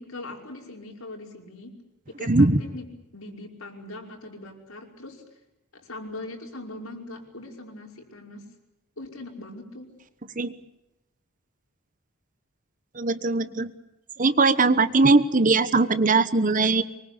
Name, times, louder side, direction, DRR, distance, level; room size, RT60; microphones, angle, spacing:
voice 1, 0.0-1.8 2.1-2.9 3.1-5.2 5.7-8.4 9.0-9.9, left 2 dB, 75° left, 2 dB, 5.4 m, -40 dB
voice 2, 2.3-2.6 10.4-10.5 13.0-13.7 14.2-16.8, right 3 dB, 40° right, 13 dB, 1.2 m, -20 dB
25.0 x 23.0 x 8.4 m, 0.92 s
head